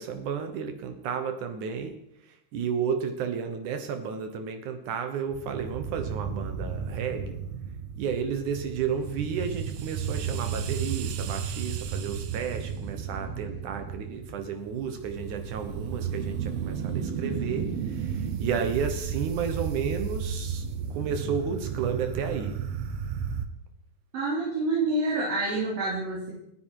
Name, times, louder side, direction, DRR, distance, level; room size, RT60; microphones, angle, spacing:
voice 1, 0.0-2.0 2.3-7.4 8.0-22.6, right 6 dB, 85° right, 6 dB, 1.7 m, -32 dB
sound 1, 5.3-23.5, right 7 dB, 70° right, 2.5 m, -33 dB
voice 2, 24.1-26.3, right 2 dB, 50° right, -6 dB, 5.0 m, -27 dB
29.5 x 10.5 x 4.8 m, 0.77 s
omnidirectional pair, 5.4 m